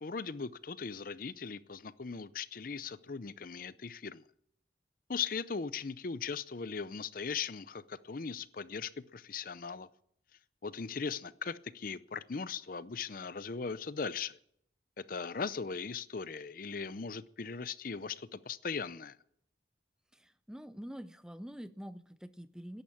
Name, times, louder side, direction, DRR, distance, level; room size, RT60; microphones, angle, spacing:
voice 1, 0.0-4.2 5.1-9.9 10.6-14.4 15.0-19.2, left 5 dB, 50° left, 0.6 m, -39 dB
voice 2, 20.1-22.8, equal, 5° right, 0.5 m, -46 dB
13.5 x 11.0 x 8.5 m
head